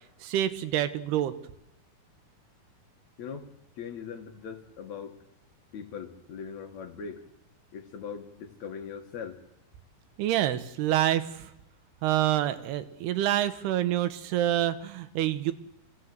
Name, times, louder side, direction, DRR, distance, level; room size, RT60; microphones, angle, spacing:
voice 1, 0.2-1.3 10.2-11.5 12.0-15.5, right 12 dB, 85° right, 11 dB, 3.1 m, -27 dB
voice 2, 3.8-5.2 5.7-7.2 7.7-9.4, left 6 dB, 50° left, 4 dB, 2.8 m, -40 dB
27.5 x 16.0 x 8.1 m, 0.87 s
omnidirectional pair, 4.5 m